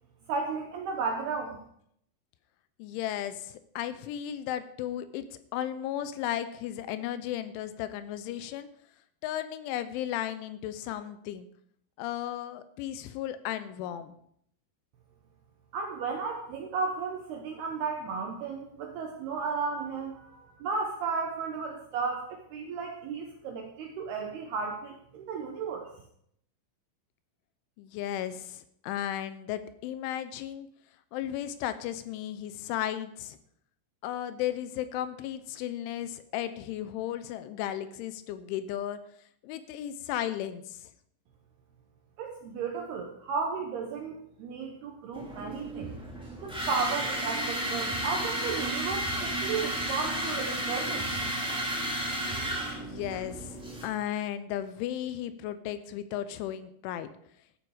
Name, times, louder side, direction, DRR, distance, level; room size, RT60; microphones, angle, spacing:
voice 1, 0.3-1.6 15.7-25.9 42.2-45.9 46.4-51.1, right 5 dB, 70° right, 2 dB, 2.5 m, -34 dB
voice 2, 2.8-8.7 9.2-11.5 12.0-14.1 27.8-30.7 31.1-33.4 34.0-39.0 39.4-40.9 52.8-57.1, left 11 dB, 80° left, 12 dB, 2.9 m, -35 dB
sound 1, 45.1-53.9, right 1 dB, ahead, 1.3 m, -32 dB
14.0 x 9.8 x 4.9 m, 0.69 s
omnidirectional pair, 5.9 m